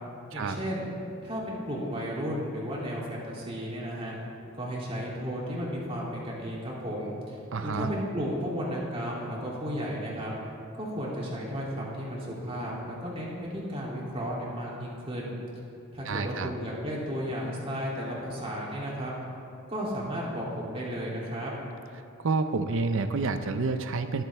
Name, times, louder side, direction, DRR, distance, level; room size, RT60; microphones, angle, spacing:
voice 1, 0.3-0.9 1.2-4.1 4.6-10.4 10.8-15.3 15.9-19.1 19.7-21.6, equal, 30° right, -5 dB, 2.8 m, -34 dB
voice 2, 7.5-7.9 16.0-16.5 22.2-24.2, right 4 dB, 65° right, 9 dB, 0.6 m, -29 dB
21.0 x 7.7 x 3.5 m, 2.9 s
head